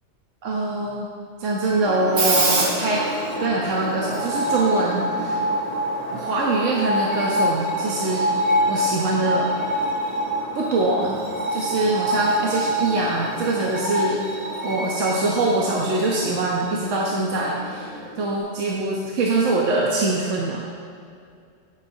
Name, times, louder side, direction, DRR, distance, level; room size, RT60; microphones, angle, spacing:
voice 1, 0.4-1.1 1.4-3.1 3.4-5.4 6.1-9.5 10.5-11.2 11.5-17.9 18.2-20.6, right 2 dB, 80° right, -3 dB, 1.2 m, -23 dB
Screech, 1.8-18.4, equal, 60° right, 1.5 m, -26 dB
14.5 x 5.7 x 2.7 m, 2.3 s
omnidirectional pair, 1.3 m